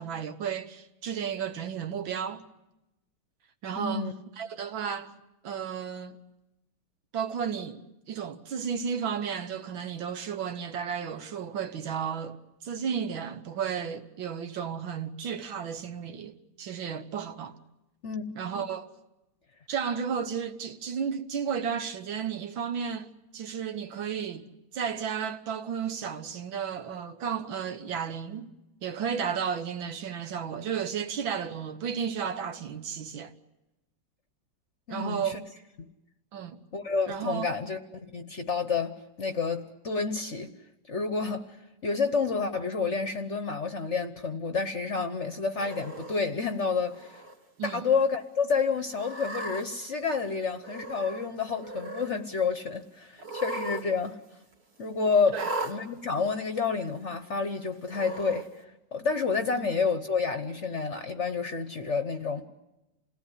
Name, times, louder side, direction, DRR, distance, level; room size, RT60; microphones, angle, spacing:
voice 1, 0.0-2.4 3.6-4.1 4.4-5.2 5.4-6.2 7.1-7.8 8.1-17.6 18.4-18.9 19.7-24.5 24.7-28.5 28.8-33.3 34.9-35.4 36.3-36.6 37.1-37.5 47.6-47.9 55.3-55.5 59.6-59.7, right 7 dB, 75° right, 2.0 m, -33 dB
voice 2, 3.8-4.1 18.0-18.2 34.9-35.4 36.7-40.5 40.9-41.6 41.8-47.2 47.6-54.2 54.8-55.4 55.6-58.6 58.9-62.5, left 5 dB, 45° left, 1.1 m, -29 dB
Cat, 45.6-46.2 46.9-47.3 47.7-47.8 48.9-49.6 50.6-51.3 51.5-52.1 53.2-53.8 54.1-54.2 55.3-55.7 56.6-56.7 57.9-58.4, right 1 dB, 90° right, 3.6 m, -37 dB
28.5 x 17.5 x 10.0 m
omnidirectional pair, 2.2 m